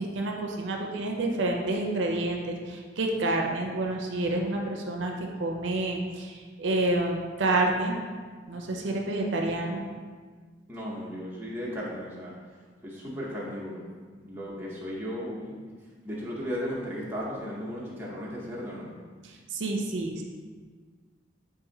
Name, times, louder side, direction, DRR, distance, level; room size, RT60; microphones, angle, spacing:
voice 1, 0.0-8.0 8.5-9.9 19.2-20.2, right 2 dB, 80° right, 1 dB, 0.5 m, -29 dB
voice 2, 10.7-12.3 12.8-13.9 14.2-15.6 16.0-18.9, equal, 10° right, -6 dB, 0.7 m, -35 dB
4.1 x 2.5 x 3.7 m, 1.5 s
head